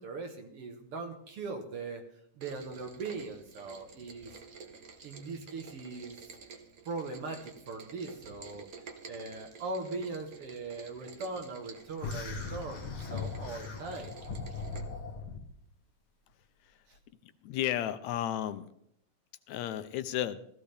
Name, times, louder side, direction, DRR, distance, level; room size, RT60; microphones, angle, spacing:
voice 1, 0.0-2.0 2.4-4.4 5.0-6.4 6.9-8.7 9.1-14.1, right 3 dB, 60° right, 4 dB, 1.9 m, -40 dB
Rain, 2.4-14.8, right 5 dB, 75° right, 0.8 m, -51 dB
sound 1, 12.0-15.4, left 4 dB, 50° left, 1.9 m, -39 dB
voice 2, 17.2-18.7 19.5-20.4, left 12 dB, 80° left, 12 dB, 1.8 m, -33 dB
16.0 x 14.5 x 3.3 m, 0.72 s
omnidirectional pair, 3.4 m